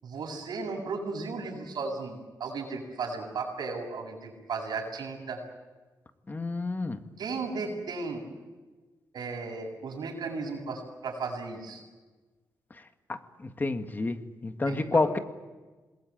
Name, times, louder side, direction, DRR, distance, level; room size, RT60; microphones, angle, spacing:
voice 1, 0.0-5.4 7.2-8.2 9.1-11.8 14.7-15.1, right 4 dB, 75° right, 1 dB, 7.6 m, -35 dB
voice 2, 6.3-7.0 13.1-15.2, left 3 dB, 25° left, 8 dB, 1.8 m, -29 dB
27.5 x 21.0 x 8.8 m, 1.3 s
wide cardioid pair, 115°, 7 cm